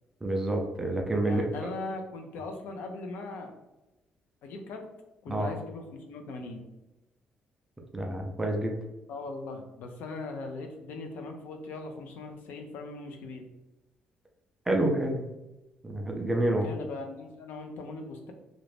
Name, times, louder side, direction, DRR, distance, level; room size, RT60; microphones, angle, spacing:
voice 1, 0.2-1.4 5.3-5.5 7.9-8.8 14.7-15.2 15.8-16.6, right 1 dB, 10° right, 2 dB, 0.3 m, -28 dB
voice 2, 1.2-3.5 4.4-4.9 5.2-6.6 9.1-13.5 16.4-18.3, left 3 dB, 80° left, 4 dB, 0.5 m, -40 dB
2.5 x 2.1 x 3.2 m, 0.99 s
cardioid pair, 175°, 3 cm